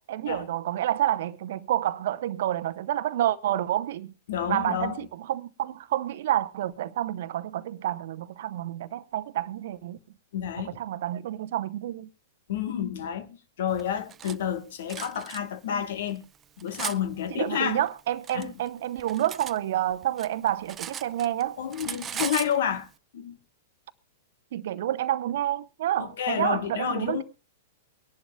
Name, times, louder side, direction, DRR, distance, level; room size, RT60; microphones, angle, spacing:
voice 1, 0.0-4.1 4.5-10.0 10.6-12.1 17.3-21.6 24.5-27.2, right 12 dB, 60° right, 0.7 m, -29 dB
voice 2, 4.3-5.0 10.3-10.8 12.5-16.2 16.6-17.9 18.3-18.5 21.6-22.9 23.1-23.4 26.0-27.2, left 8 dB, 65° left, 1.4 m, -30 dB
Cutlery silverware, 13.8-14.4 14.9-15.4 16.1-17.0 17.9-19.6 19.9-21.4 21.7-22.6, right 8 dB, 25° right, 0.5 m, -37 dB
23.5 x 11.0 x 2.2 m
hypercardioid pair, 105°, 0 cm